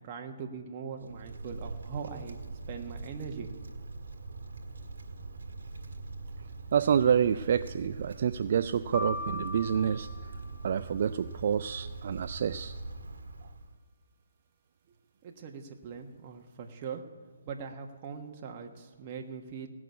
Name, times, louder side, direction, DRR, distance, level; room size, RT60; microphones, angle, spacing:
voice 1, 0.0-2.4 2.7-3.5 15.2-17.0 17.4-19.7, right 6 dB, 35° right, 3 dB, 1.5 m, -41 dB
Wind, 0.9-13.8, right 3 dB, 75° right, 1.7 m, -43 dB
voice 2, 6.7-10.1 10.6-12.8, right 8 dB, 55° right, 11 dB, 0.4 m, -28 dB
sound 1, 8.9-11.1, left 2 dB, 20° right, 1.8 m, -39 dB
18.0 x 6.2 x 8.3 m, 1.4 s
hypercardioid pair, 145°, 0 cm